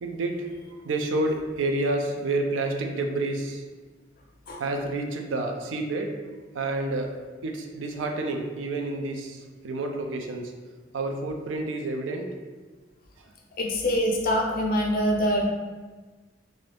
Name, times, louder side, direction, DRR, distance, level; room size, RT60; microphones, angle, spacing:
voice 1, 0.0-3.6 4.6-6.2 6.5-7.2 7.4-10.5 10.9-12.3, right 2 dB, 85° right, 3 dB, 0.4 m, -29 dB
voice 2, 13.6-15.5, equal, 50° left, 0 dB, 0.5 m, -24 dB
2.6 x 2.3 x 3.3 m, 1.3 s
head